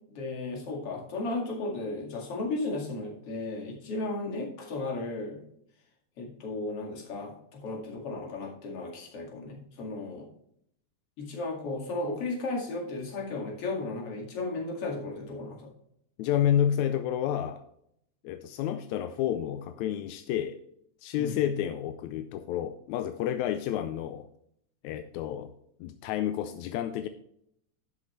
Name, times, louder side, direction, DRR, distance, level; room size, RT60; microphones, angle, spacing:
voice 1, 0.1-5.4 6.2-10.3 11.2-15.7 21.2-21.4, left 2 dB, 50° left, -1 dB, 2.9 m, -35 dB
voice 2, 16.2-17.6 18.2-20.6 21.0-24.3 24.8-25.5 25.8-27.1, left 10 dB, 80° left, 9 dB, 1.7 m, -30 dB
11.5 x 7.3 x 3.2 m, 0.71 s
omnidirectional pair, 3.7 m